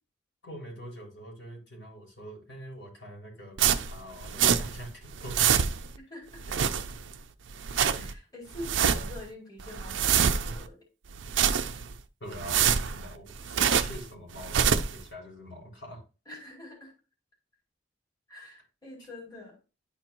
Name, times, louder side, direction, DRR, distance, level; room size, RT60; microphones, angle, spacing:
voice 1, 0.4-5.6 8.0-8.1 12.2-16.0 19.0-19.1, equal, 70° left, -1 dB, 3.6 m, -44 dB
sound 1, 3.6-4.9 5.1-6.0 6.3-7.2 7.5-8.1 8.5-9.2 9.6-10.7 11.1-11.9 12.3-14.0 14.4-15.0, right 8 dB, 90° right, 0.5 m, -26 dB
voice 2, 6.0-6.4 7.9-10.8 16.3-16.9 18.3-19.6, left 1 dB, 20° left, -4 dB, 2.4 m, -45 dB
10.5 x 4.4 x 2.6 m, 0.31 s
head